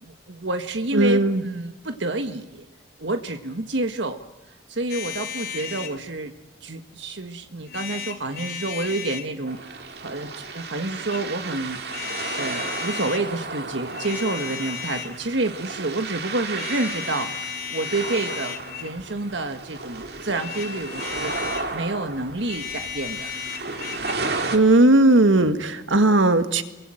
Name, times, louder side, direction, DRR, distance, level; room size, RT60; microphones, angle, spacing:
voice 1, 0.0-2.6 3.0-4.2 4.5-6.3 6.6-17.4 17.7-23.3, right 2 dB, 75° right, 7 dB, 1.5 m, -29 dB
voice 2, 0.9-1.4 24.5-26.6, right 2 dB, 90° right, 10 dB, 1.7 m, -17 dB
sound 1, 4.9-6.0 7.7-9.3 10.8-11.2 11.9-13.2 13.8-15.2 16.5-19.0 20.3-21.7 22.4-24.1, left 8 dB, 50° left, 3.0 m, -34 dB
sound 2, 9.5-24.6, right 3 dB, 55° right, 2.6 m, -34 dB
27.0 x 23.5 x 7.8 m, 1.0 s
head